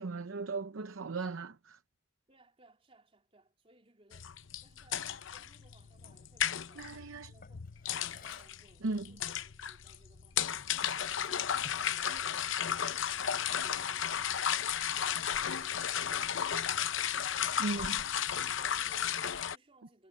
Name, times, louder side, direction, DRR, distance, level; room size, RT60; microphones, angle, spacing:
voice 1, 0.0-1.8 6.8-7.3 8.8-9.1 17.6-18.0, right 3 dB, 80° right, 0.7 m, -37 dB
voice 2, 2.3-4.4 4.6-7.7 8.1-17.0 17.4-20.1, right 2 dB, 30° right, 3.8 m, -65 dB
sound 1, 4.1-19.6, left 9 dB, 70° left, 0.8 m, -34 dB
Drawer open or close, 7.4-8.7 9.9-10.1 10.5-12.0, left 2 dB, 45° left, 4.6 m, -56 dB
head